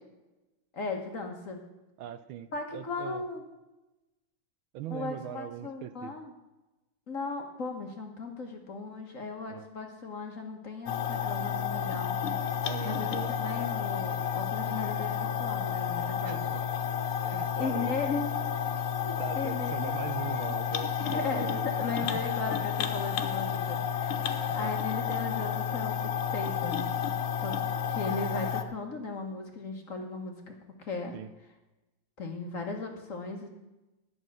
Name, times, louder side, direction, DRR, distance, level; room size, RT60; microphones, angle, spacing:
voice 1, 0.7-1.6 2.5-3.4 4.9-6.3 7.1-12.2 12.8-16.4 17.6-18.3 19.0-19.9 20.3-26.8 27.4-27.6 27.9-31.1 32.2-33.5, left 3 dB, 45° left, 3 dB, 1.5 m, -37 dB
voice 2, 2.0-3.2 4.7-6.1 9.5-9.7 12.6-13.3 16.2-16.6 17.2-18.0 19.2-22.3 24.3-24.8 31.1-31.3, right 11 dB, 80° right, 12 dB, 1.4 m, -41 dB
sound 1, 10.9-28.6, left 8 dB, 80° left, 1.8 m, -31 dB
11.0 x 6.5 x 8.7 m, 1.0 s
omnidirectional pair, 2.3 m